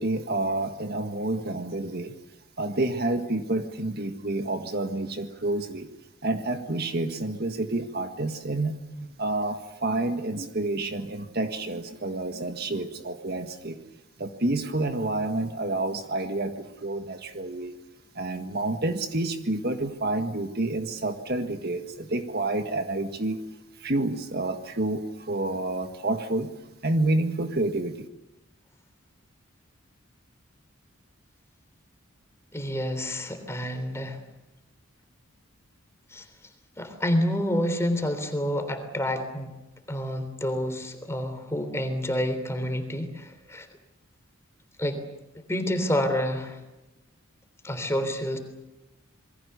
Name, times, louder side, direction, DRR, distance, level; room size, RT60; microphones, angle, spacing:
voice 1, 0.0-2.1 2.6-5.9 6.2-13.8 14.2-17.7 18.1-23.4 23.8-26.5 26.8-28.1, right 2 dB, 50° right, 7 dB, 1.7 m, -29 dB
voice 2, 32.5-34.2 36.1-36.3 36.8-39.5 39.9-43.7 44.8-45.0 45.4-46.6 47.6-48.4, equal, 15° left, 8 dB, 3.4 m, -28 dB
27.5 x 22.5 x 6.9 m, 0.98 s
head